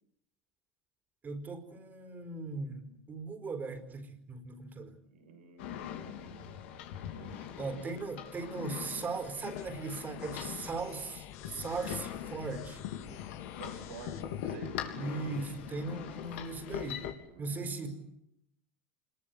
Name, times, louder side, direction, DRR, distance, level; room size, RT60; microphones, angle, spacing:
voice 1, 1.2-5.0 7.6-12.8 15.0-17.0 17.4-18.0, right 3 dB, 30° right, 9 dB, 4.7 m, -38 dB
voice 2, 5.0-6.7 7.1-7.9 13.5-14.8 17.3-18.0, right 5 dB, 90° right, 5 dB, 6.4 m, -51 dB
sound 1, 5.6-17.1, left 10 dB, 75° left, 3.4 m, -42 dB
sound 2, 9.6-14.6, left 11 dB, 55° left, 1.9 m, -51 dB
26.5 x 21.5 x 9.6 m, 0.75 s
hypercardioid pair, 95°, 6 cm